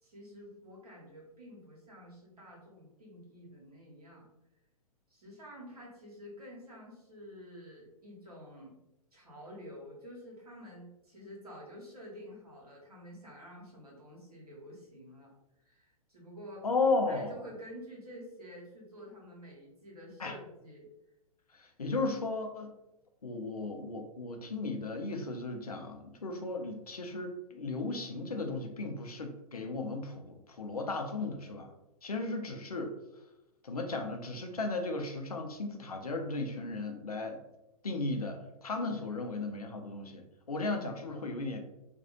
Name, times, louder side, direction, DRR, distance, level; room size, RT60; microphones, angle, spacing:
voice 1, 0.0-4.3 5.1-8.8 9.1-15.3 15.6-16.7 17.1-20.9 38.9-39.2 41.1-41.2, equal, 80° right, -3 dB, 1.1 m, -49 dB
voice 2, 16.6-17.3 20.2-20.3 21.5-22.7 23.2-31.7 32.0-32.9 33.6-37.4 37.8-41.6, left 3 dB, 80° left, 3 dB, 0.5 m, -35 dB
2.5 x 2.3 x 2.8 m, 0.92 s
figure-of-eight pair, 110°, 19 cm